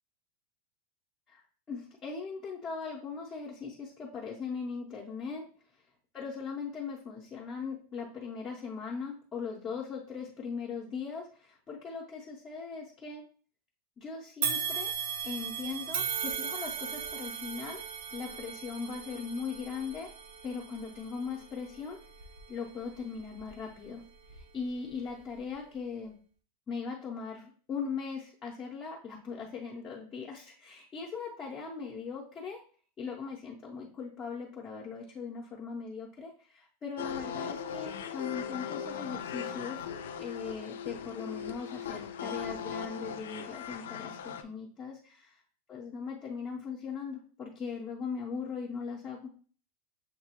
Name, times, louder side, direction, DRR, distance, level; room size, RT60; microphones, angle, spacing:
voice 1, 1.7-5.5 6.1-13.2 14.0-14.9 15.2-17.8 18.1-20.1 20.4-22.0 22.5-24.0 24.4-26.2 26.7-32.6 33.0-39.9 40.2-45.4 45.7-49.3, left 5 dB, 20° left, -3 dB, 0.6 m, -39 dB
sound 1, 14.4-23.7 24.2-24.4 25.4-25.5, right 7 dB, 70° right, 0.5 m, -38 dB
sound 2, 37.0-44.4, left 7 dB, 90° left, 0.4 m, -39 dB
6.6 x 2.3 x 2.9 m, 0.42 s
supercardioid pair, 165°, 0 cm